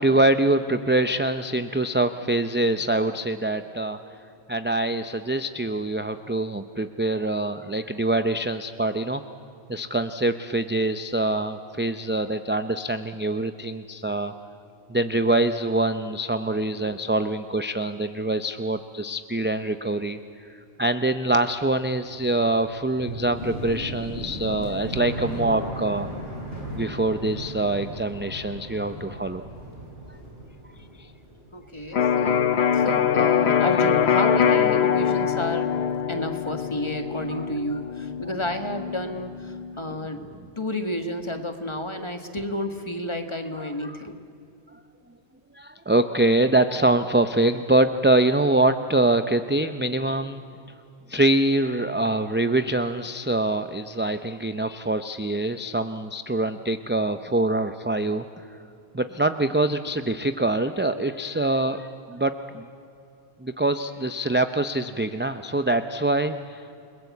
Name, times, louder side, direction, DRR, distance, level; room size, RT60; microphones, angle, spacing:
voice 1, 0.0-4.0 4.5-9.2 9.7-14.3 14.9-20.2 20.8-26.1 26.7-29.4 31.0-31.1 37.3-37.5 43.5-44.0 45.5-50.4 51.1-58.2 58.9-62.7 63.4-66.6, right 2 dB, 15° right, 9 dB, 0.5 m, -24 dB
sound 1, 21.9-31.7 31.9-32.8, right 1 dB, 60° right, 8.0 m, -37 dB
voice 2, 31.5-35.8 36.1-40.2 40.6-44.2 60.9-61.0, left 1 dB, 25° left, 7 dB, 1.7 m, -31 dB
Electric guitar, 31.9-39.7, left 8 dB, 70° left, 1.1 m, -23 dB
29.5 x 21.0 x 8.4 m, 2.7 s
omnidirectional pair, 1.1 m